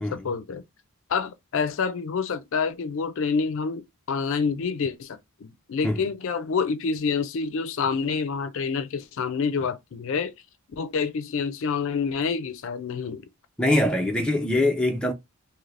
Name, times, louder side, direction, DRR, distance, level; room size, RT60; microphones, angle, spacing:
voice 1, 0.1-0.6 1.1-10.3 10.7-13.3, left 5 dB, 65° left, 0.4 m, -27 dB
voice 2, 13.6-15.1, left 1 dB, 5° left, 0.4 m, -23 dB
2.7 x 2.6 x 3.2 m
head